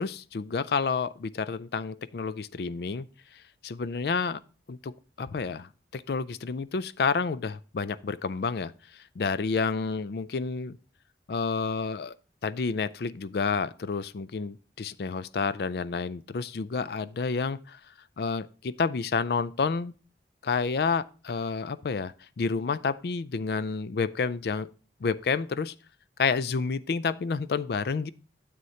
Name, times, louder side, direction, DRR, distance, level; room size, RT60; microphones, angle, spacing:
voice 1, 0.0-3.1 3.6-4.4 4.7-10.8 11.3-12.2 12.4-17.8 18.2-19.9 20.4-24.7 25.0-25.7 26.2-28.1, left 5 dB, 60° left, 0.4 m, -30 dB
9.4 x 7.8 x 2.8 m
head